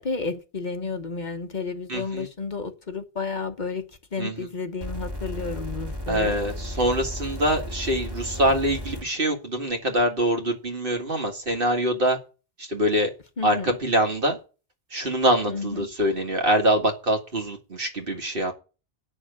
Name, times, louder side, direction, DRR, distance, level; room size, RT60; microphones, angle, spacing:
voice 1, 0.0-3.9 4.1-6.4 13.4-13.8 15.5-15.9, left 4 dB, 45° left, 1.2 m, -31 dB
voice 2, 1.9-2.3 4.2-4.4 6.1-12.2 12.6-13.1 13.4-14.4 14.9-18.5, right 1 dB, 60° right, 2.1 m, -24 dB
sound 1, 4.8-9.0 10.0-10.1, equal, 20° right, 2.1 m, -34 dB
9.1 x 6.5 x 8.1 m
omnidirectional pair, 1.1 m